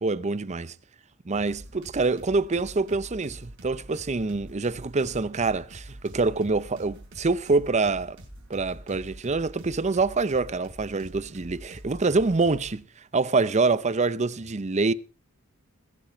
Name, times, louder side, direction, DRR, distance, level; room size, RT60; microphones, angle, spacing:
voice 1, 0.0-0.7 1.3-8.2 8.5-12.8 13.1-14.9, right 3 dB, 35° right, 0.6 m, -25 dB
sound 1, 1.5-12.8, right 1 dB, 65° right, 5.1 m, -46 dB
20.5 x 9.0 x 4.5 m
head